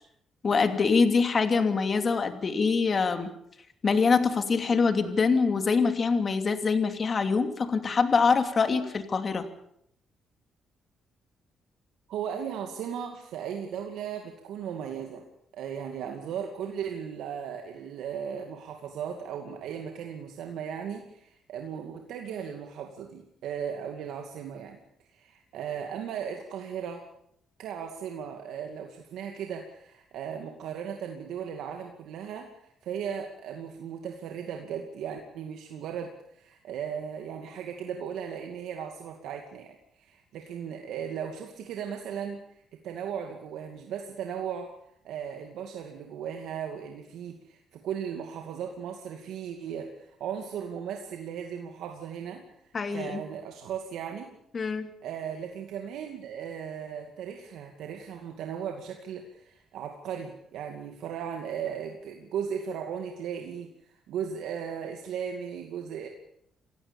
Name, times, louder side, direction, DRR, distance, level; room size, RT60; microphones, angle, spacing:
voice 1, 0.4-3.3 3.8-9.4 52.7-53.2 54.5-54.9, left 4 dB, 40° left, 7 dB, 2.8 m, -24 dB
voice 2, 12.1-15.2 15.5-24.8 25.1-27.1 27.6-44.7 45.0-54.3 55.0-66.1, right 8 dB, 80° right, 3 dB, 2.4 m, -37 dB
27.5 x 16.0 x 7.2 m, 0.73 s
cardioid pair, 90°, 0 cm